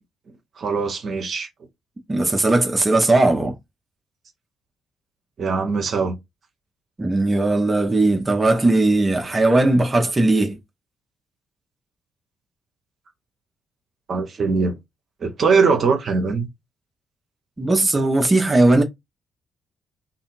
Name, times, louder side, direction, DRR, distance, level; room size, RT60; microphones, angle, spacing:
voice 1, 0.6-1.5 5.4-6.1 14.1-14.8 15.2-16.5, right 5 dB, 50° right, 0.9 m, -21 dB
voice 2, 2.1-3.6 7.0-10.6 17.6-18.8, right 2 dB, 25° right, 0.8 m, -18 dB
2.7 x 2.6 x 2.5 m
figure-of-eight pair, 40°, 0 cm